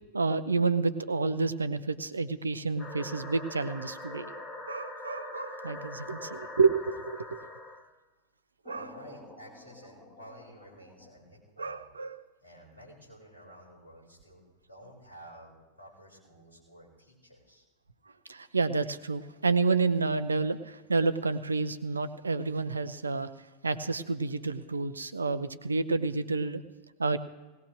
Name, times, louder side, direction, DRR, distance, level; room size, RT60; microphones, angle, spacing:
voice 1, 0.1-4.3 4.7-7.4 8.7-8.9 11.6-12.2 18.3-23.3 23.6-26.6 27.0-27.2, right 4 dB, 75° right, 13 dB, 0.7 m, -29 dB
sound 1, 2.8-7.8 8.7-11.1, left 1 dB, 25° left, 3.0 m, -44 dB
voice 2, 8.7-11.9 12.4-17.6, equal, 80° left, -3 dB, 5.2 m, -52 dB
19.0 x 18.0 x 3.2 m, 1.2 s
figure-of-eight pair, 90°, 0 cm